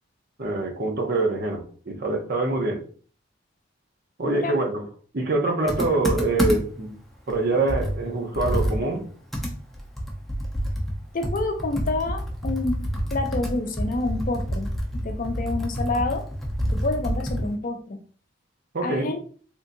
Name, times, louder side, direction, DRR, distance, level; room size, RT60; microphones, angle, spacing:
voice 1, 0.4-2.8 4.2-4.8 5.1-6.9 7.3-9.1 18.7-19.1, right 2 dB, 55° right, 3 dB, 0.8 m, -25 dB
voice 2, 4.2-4.6 11.1-16.3 16.7-18.0 18.8-19.2, left 2 dB, 45° left, 6 dB, 0.5 m, -28 dB
Computer keyboard, 5.7-6.8 7.3-7.4 7.7-17.5, equal, ahead, 0.6 m, -28 dB
3.6 x 2.6 x 2.6 m, 0.42 s
head